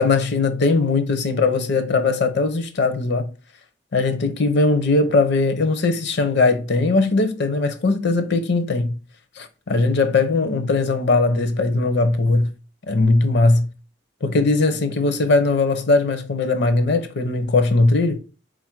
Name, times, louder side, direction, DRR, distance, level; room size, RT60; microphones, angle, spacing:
voice 1, 0.0-3.3 3.9-9.0 9.4-12.5 12.9-13.7 14.2-18.2, left 3 dB, 65° left, 0.6 m, -19 dB
3.8 x 2.5 x 4.4 m
head